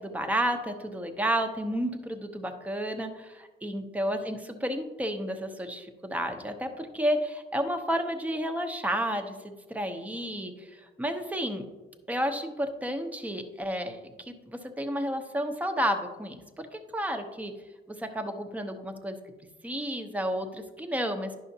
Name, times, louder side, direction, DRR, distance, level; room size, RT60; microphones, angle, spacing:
voice 1, 0.0-11.6 12.1-17.5 17.9-19.2 19.6-21.3, equal, 5° right, 6 dB, 0.8 m, -31 dB
11.0 x 5.6 x 2.8 m, 1.2 s
cardioid pair, 90°, 20 cm